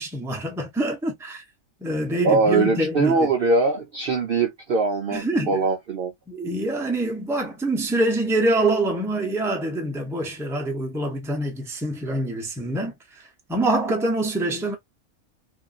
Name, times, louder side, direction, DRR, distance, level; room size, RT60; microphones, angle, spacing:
voice 1, 0.0-1.4 1.8-3.3 5.1-5.6 6.3-14.8, right 1 dB, 5° right, 0.5 m, -25 dB
voice 2, 2.2-6.1, right 3 dB, 60° right, 0.6 m, -22 dB
2.5 x 2.5 x 2.3 m
omnidirectional pair, 1.5 m